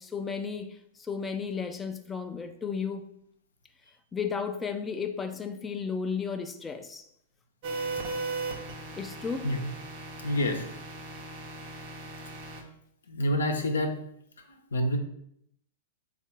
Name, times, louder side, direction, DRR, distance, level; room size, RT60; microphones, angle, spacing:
voice 1, 0.0-3.1 4.1-7.1 8.9-9.5, left 6 dB, 15° left, 0.3 m, -34 dB
sound 1, 7.6-12.6, right 3 dB, 50° right, 0.8 m, -37 dB
voice 2, 10.2-10.6 13.1-13.9 14.7-15.0, left 1 dB, 85° left, 0.6 m, -27 dB
3.6 x 2.4 x 4.2 m
hypercardioid pair, 110°, 0 cm